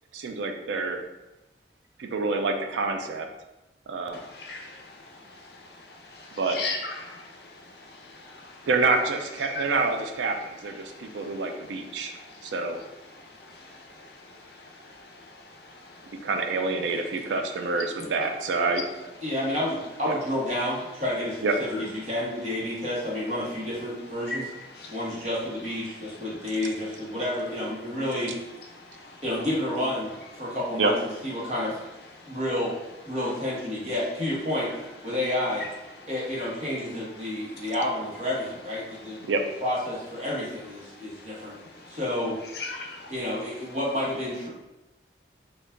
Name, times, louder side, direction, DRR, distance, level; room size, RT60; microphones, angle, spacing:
voice 1, 0.1-1.0 2.0-3.3 3.9-4.2 6.4-6.6 8.7-12.1 12.4-12.8 16.2-19.1 20.0-20.1 21.4-21.5 30.8-30.9 39.3-39.4, right 3 dB, 90° right, 5 dB, 0.4 m, -27 dB
voice 2, 4.1-4.7 6.5-7.2 9.5-9.6 24.3-24.4 24.8-24.9 42.6-43.1, left 3 dB, 65° left, 1 dB, 0.5 m, -34 dB
voice 3, 19.2-24.5 24.9-28.3 29.2-30.9 31.2-31.8 32.3-32.7 33.1-34.7 35.0-35.7 36.1-39.2 39.6-41.5 41.9-42.4 43.1-44.5, left 1 dB, 35° right, -6 dB, 1.0 m, -30 dB
4.4 x 2.4 x 2.5 m, 1.0 s
head